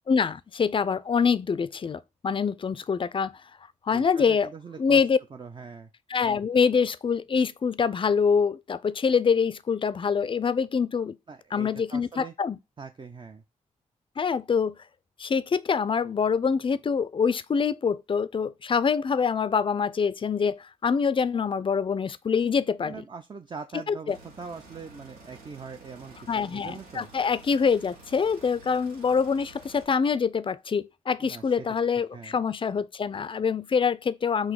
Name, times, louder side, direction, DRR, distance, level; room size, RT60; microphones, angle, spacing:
voice 1, 0.1-3.3 3.9-4.5 4.8-5.2 6.1-11.2 11.5-12.6 14.2-14.8 15.2-23.0 23.9-24.2 26.3-34.5, left 6 dB, 35° left, 0.4 m, -25 dB
voice 2, 3.9-5.0 5.3-5.9 11.3-12.3 12.8-13.4 22.8-27.1 31.2-31.7 32.1-32.4, right 5 dB, 30° right, 0.5 m, -42 dB
sound 1, 24.1-29.8, right 2 dB, 90° right, 1.1 m, -50 dB
4.0 x 2.6 x 4.6 m
supercardioid pair, 45°, 15 cm